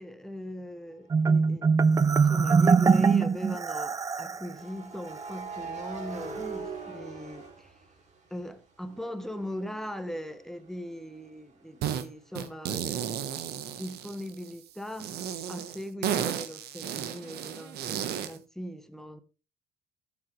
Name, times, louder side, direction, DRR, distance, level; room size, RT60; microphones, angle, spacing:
voice 1, 0.0-7.8 8.3-15.2 15.5-19.2, equal, ahead, 1.2 m, -40 dB
Marimba xylophone, 1.1-4.5, right 5 dB, 20° right, 0.5 m, -22 dB
sound 1, 1.2-1.5 4.5-8.4 8.8-12.4, right 5 dB, 40° right, 3.2 m, -42 dB
sound 2, 11.8-12.1 12.4-14.5 15.0-18.4, right 9 dB, 65° right, 1.3 m, -33 dB
14.0 x 7.7 x 3.3 m
cardioid pair, 110°, 18 cm